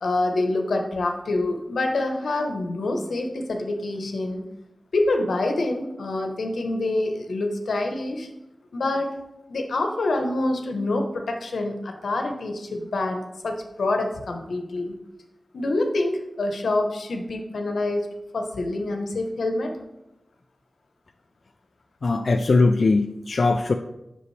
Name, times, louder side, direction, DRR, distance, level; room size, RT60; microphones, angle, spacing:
voice 1, 0.0-4.4 4.9-8.3 8.7-9.2 9.5-15.0 15.5-18.1 18.3-19.8, left 2 dB, 90° left, 4 dB, 0.9 m, -26 dB
voice 2, 22.0-23.7, left 3 dB, 60° left, 6 dB, 0.3 m, -20 dB
8.1 x 6.1 x 3.2 m, 0.94 s
wide cardioid pair, 80°, 0 cm